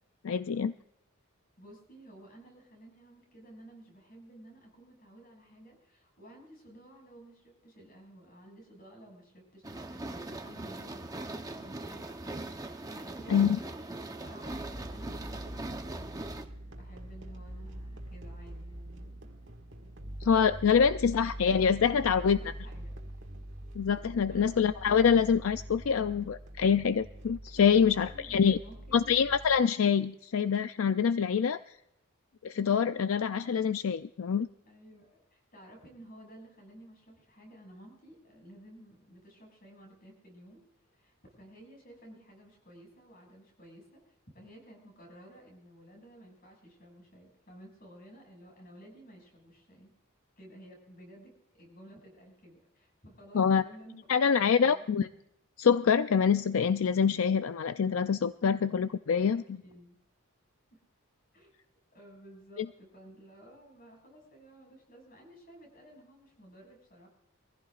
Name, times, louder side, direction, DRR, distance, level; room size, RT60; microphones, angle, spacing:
voice 1, 0.2-0.7 13.3-13.6 20.2-22.4 23.8-28.6 28.9-31.6 32.4-34.5 53.3-53.6 54.1-55.1 55.6-59.6, left 7 dB, 75° left, 11 dB, 0.4 m, -25 dB
voice 2, 1.6-15.8 16.4-19.5 21.7-23.0 24.3-24.6 27.8-29.2 34.6-40.6 40.9-49.9 50.4-54.8 59.2-60.0 60.7-60.8 61.3-61.5 61.9-67.1, right 1 dB, 40° left, 1 dB, 6.2 m, -54 dB
sound 1, 9.6-16.4, right 2 dB, 15° right, 0.8 m, -40 dB
sound 2, 14.4-29.6, right 1 dB, 60° right, 1.8 m, -44 dB
23.5 x 15.5 x 2.4 m, 0.80 s
head